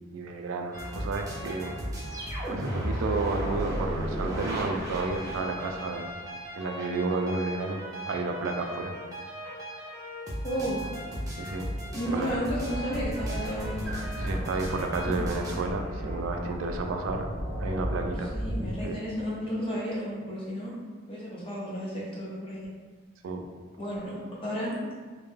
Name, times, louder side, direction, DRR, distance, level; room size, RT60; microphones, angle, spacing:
voice 1, 0.0-1.8 2.5-6.1 6.6-8.9 11.4-11.7 12.1-12.3 14.2-17.3 17.6-18.3 18.8-19.0 23.2-23.4, right 3 dB, 85° right, 5 dB, 0.3 m, -31 dB
sound 1, 0.7-15.6, equal, 20° right, 0.5 m, -35 dB
voice 2, 10.4-10.8 11.9-13.8 15.1-15.2 18.3-20.7 21.1-22.7 23.8-24.8, equal, 25° left, -6 dB, 0.6 m, -33 dB
sound 2, 12.3-18.9, equal, 75° left, 0.6 m, -34 dB
2.1 x 2.1 x 3.2 m, 1.5 s
head